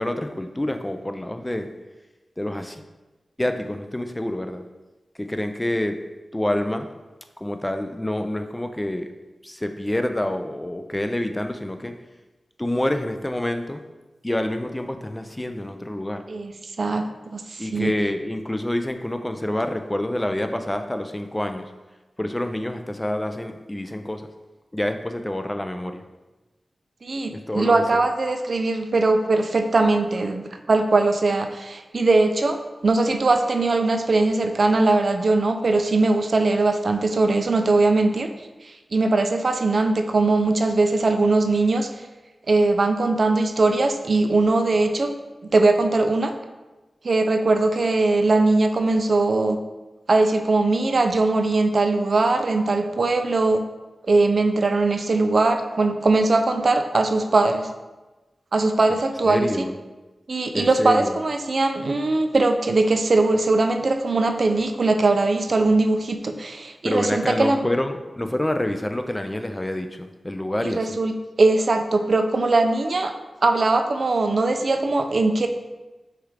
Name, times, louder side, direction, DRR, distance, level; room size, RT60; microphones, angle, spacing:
voice 1, 0.0-1.7 2.4-2.8 3.4-4.6 5.2-6.0 6.3-6.9 7.4-9.1 9.4-11.9 12.6-13.8 14.2-16.2 17.6-21.7 22.2-24.3 24.7-26.0 27.3-28.0 59.3-59.8 60.5-61.2 66.8-71.0, left 1 dB, 15° left, 7 dB, 0.4 m, -27 dB
voice 2, 17.3-17.9 27.0-38.3 38.6-41.9 42.5-45.1 45.5-46.3 47.0-49.6 50.1-53.6 54.1-57.7 58.5-59.5 60.3-67.7 70.6-71.1 71.4-73.1 73.4-75.5, right 3 dB, 60° right, 6 dB, 0.4 m, -20 dB
6.1 x 2.5 x 3.3 m, 1.1 s
cardioid pair, 60°, 0 cm